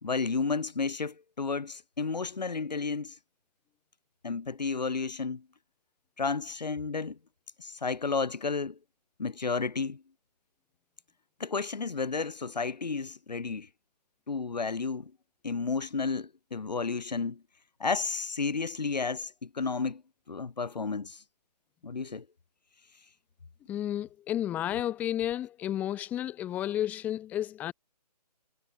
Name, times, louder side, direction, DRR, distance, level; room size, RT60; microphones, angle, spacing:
voice 1, 0.0-3.2 4.2-5.5 6.2-7.2 7.6-8.8 9.2-10.0 11.4-13.7 14.3-15.1 15.4-17.4 17.8-20.0 20.3-21.2 21.8-22.3, left 4 dB, 85° left, 2.1 m, -32 dB
voice 2, 23.7-27.7, left 11 dB, 5° left, 1.0 m, -32 dB
hypercardioid pair, 160°, 21 cm